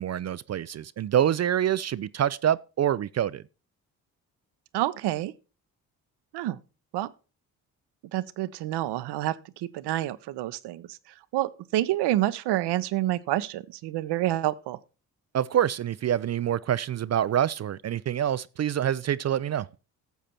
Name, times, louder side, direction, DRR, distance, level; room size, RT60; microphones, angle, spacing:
voice 1, 0.0-3.4 15.3-19.7, right 10 dB, 40° right, 0.5 m, -26 dB
voice 2, 4.7-5.3 6.3-6.6 6.9-7.1 8.1-11.0 11.3-14.8, right 14 dB, 70° right, 0.8 m, -28 dB
12.5 x 7.4 x 4.4 m
hypercardioid pair, 45°, 42 cm